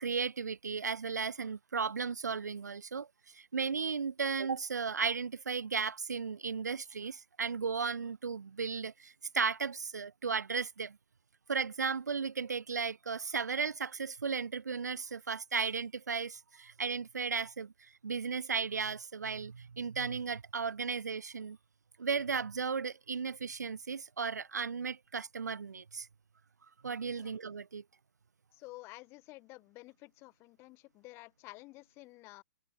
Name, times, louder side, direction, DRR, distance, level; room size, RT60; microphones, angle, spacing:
voice 1, 0.0-11.0 11.5-21.6 22.0-26.1 26.8-27.8, right 5 dB, 75° right, 0.4 m, -35 dB
voice 2, 28.5-32.4, left 21 dB, 25° left, 5.0 m, -51 dB
figure-of-eight pair, 120°, 9 cm